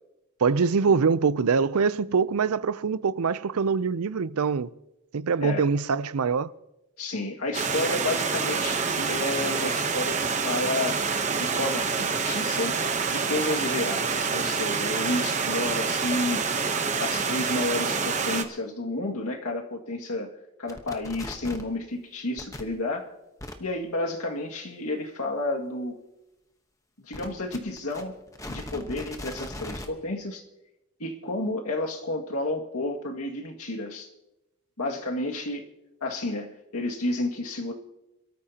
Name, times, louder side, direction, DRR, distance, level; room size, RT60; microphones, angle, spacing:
voice 1, 0.4-4.7 5.1-6.5, right 5 dB, 85° right, 0.5 m, -24 dB
voice 2, 7.0-11.0 11.3-12.8 13.1-16.5 17.0-20.3 20.6-23.1 23.6-26.0 27.0-28.1 28.5-30.4 31.0-34.1 34.8-35.7 36.0-37.7, left 2 dB, 90° left, 2.1 m, -31 dB
Stream, 7.5-18.4, right 5 dB, 30° right, 0.9 m, -27 dB
sound 1, 20.7-21.7 22.4-22.6 23.4-23.5 27.1-29.9, left 1 dB, 15° left, 1.0 m, -38 dB
27.5 x 13.5 x 2.9 m
head